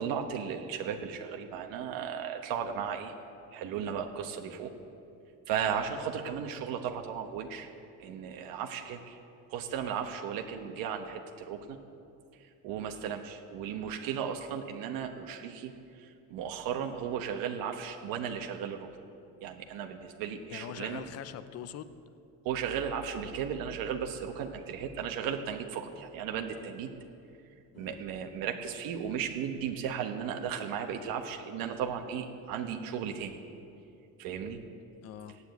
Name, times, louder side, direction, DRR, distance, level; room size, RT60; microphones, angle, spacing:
voice 1, 0.0-3.1 3.5-4.7 5.5-7.7 8.0-9.2 9.5-11.8 12.6-15.7 16.0-18.9 19.4-21.0 22.4-26.9 27.8-33.4 34.2-34.6, right 8 dB, 85° right, 4 dB, 1.2 m, -35 dB
voice 2, 20.5-21.9 27.7-28.0 35.0-35.4, left 10 dB, 45° left, 13 dB, 0.7 m, -43 dB
15.5 x 9.9 x 8.1 m, 2.6 s
cardioid pair, 170°, 34 cm